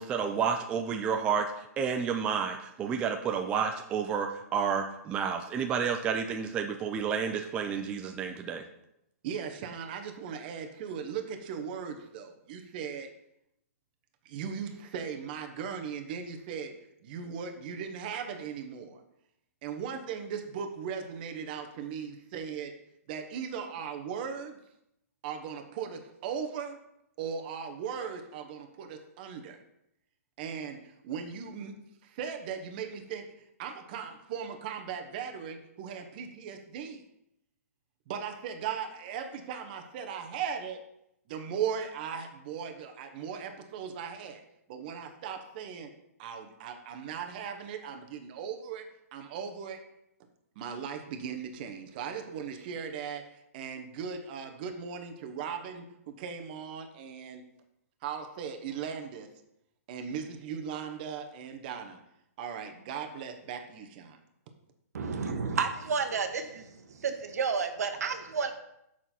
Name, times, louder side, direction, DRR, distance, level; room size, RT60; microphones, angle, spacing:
voice 1, 0.0-1.5 1.8-8.6, right 6 dB, 10° right, 4 dB, 0.3 m, -30 dB
voice 2, 9.2-13.1 14.2-19.0 19.6-22.7 23.1-24.6 25.2-26.8 27.2-29.6 30.4-33.3 33.6-37.0 38.1-40.8 41.3-44.4 44.7-45.9 46.2-48.9 49.1-49.8 50.5-57.4 58.0-59.3 59.9-62.0 62.4-64.2, right 7 dB, 35° right, 5 dB, 1.0 m, -38 dB
voice 3, 64.9-66.6 67.0-68.5, right 5 dB, 80° right, 7 dB, 1.2 m, -31 dB
6.8 x 6.0 x 4.4 m, 0.80 s
hypercardioid pair, 160°, 8 cm